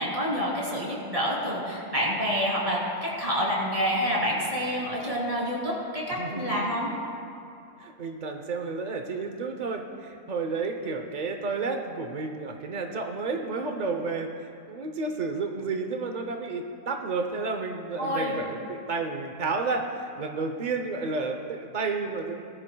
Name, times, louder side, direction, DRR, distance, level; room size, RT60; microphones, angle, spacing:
voice 1, 0.0-6.9 18.0-18.4, equal, 20° right, -5 dB, 2.9 m, -28 dB
voice 2, 6.1-6.7 7.8-22.4, right 4 dB, 65° right, 4 dB, 0.4 m, -31 dB
19.0 x 13.5 x 2.2 m, 2.6 s
omnidirectional pair, 1.7 m